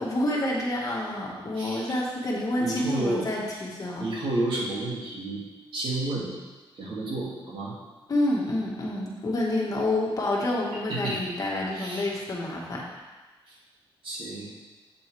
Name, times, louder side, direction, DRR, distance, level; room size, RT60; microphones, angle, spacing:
voice 1, 0.0-4.1 8.1-12.8, left 1 dB, 40° left, -3 dB, 1.7 m, -28 dB
voice 2, 2.6-3.3 4.0-5.4 5.7-6.3 6.8-7.7 10.9-11.2 11.7-12.1 14.0-14.6, right 2 dB, 65° right, -6 dB, 2.5 m, -30 dB
8.1 x 7.5 x 3.4 m, 1.2 s
wide cardioid pair, 115°, 9 cm